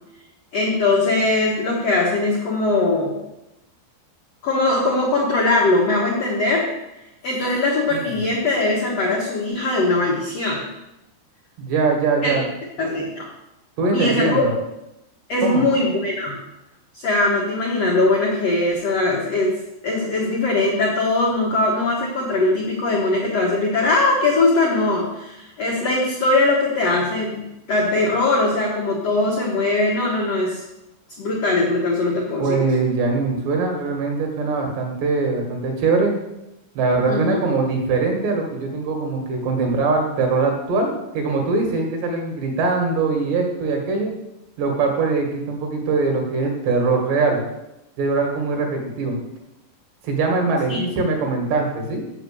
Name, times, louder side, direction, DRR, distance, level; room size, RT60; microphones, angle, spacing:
voice 1, 0.5-3.2 4.4-6.7 7.2-10.6 12.2-12.3 12.8-13.3 13.9-14.4 15.3-16.4 16.9-19.5 19.8-30.6 31.2-32.7 37.1-37.4 50.7-50.8, left 2 dB, 70° left, -3 dB, 1.5 m, -21 dB
voice 2, 11.6-12.5 13.8-14.5 15.4-15.6 32.4-36.1 36.8-44.1 44.6-47.4 48.0-49.2 50.0-52.1, right 3 dB, 70° right, 2 dB, 3.9 m, -22 dB
7.3 x 6.9 x 7.7 m, 0.91 s
omnidirectional pair, 5.2 m